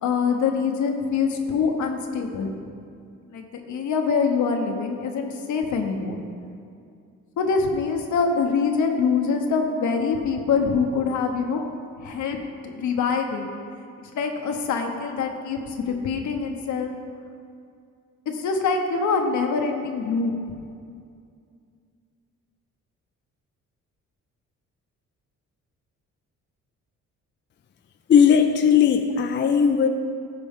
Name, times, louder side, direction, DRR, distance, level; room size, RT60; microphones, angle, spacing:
voice 1, 0.0-2.5 3.3-6.2 7.4-11.6 12.0-12.4 12.6-13.5 14.0-16.9 18.3-20.3, left 5 dB, 75° left, 4 dB, 1.1 m, -24 dB
voice 2, 28.1-29.9, left 7 dB, 40° left, 6 dB, 0.5 m, -17 dB
14.0 x 5.2 x 3.7 m, 2.4 s
cardioid pair, 90°, 30 cm